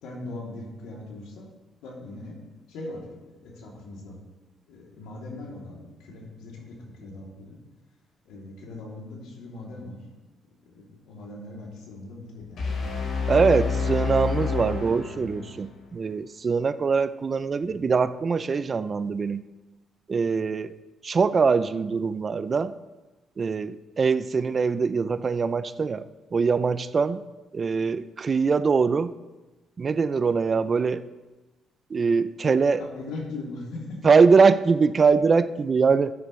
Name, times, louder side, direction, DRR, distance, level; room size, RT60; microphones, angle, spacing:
voice 1, 0.0-1.5 1.8-2.4 2.7-3.0 3.4-4.1 4.7-7.6 8.2-10.0 10.7-12.6 14.5-15.6 17.6-17.8 32.8-33.9, left 2 dB, 90° left, -2 dB, 2.9 m, -40 dB
sound 1, 12.6-15.6, left 5 dB, 70° left, 4.3 m, -28 dB
voice 2, 13.3-19.4 20.1-20.7 21.0-22.7 23.4-26.0 26.3-27.2 27.5-29.1 29.8-31.0 31.9-32.8 34.0-36.1, right 5 dB, 40° right, 14 dB, 0.4 m, -22 dB
14.0 x 9.6 x 3.2 m, 1.2 s
cardioid pair, 90°, 0 cm